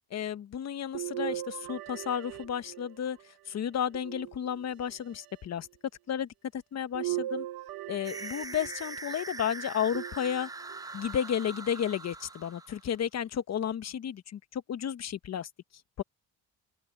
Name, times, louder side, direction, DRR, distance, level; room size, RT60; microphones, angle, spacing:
voice 1, 0.1-3.2 3.5-5.7 6.1-7.5 7.9-10.5 10.9-15.5 16.0-16.1, left 9 dB, 45° left, 1.1 m, -32 dB
sound 1, 0.9-3.2 3.9-4.9 6.9-9.0 9.9-10.8 11.4-11.5 12.9-13.0, right 16 dB, 70° right, 1.0 m, -38 dB
sound 2, 8.0-13.0, right 3 dB, 10° right, 0.4 m, -42 dB
open air
cardioid pair, 105°, 37 cm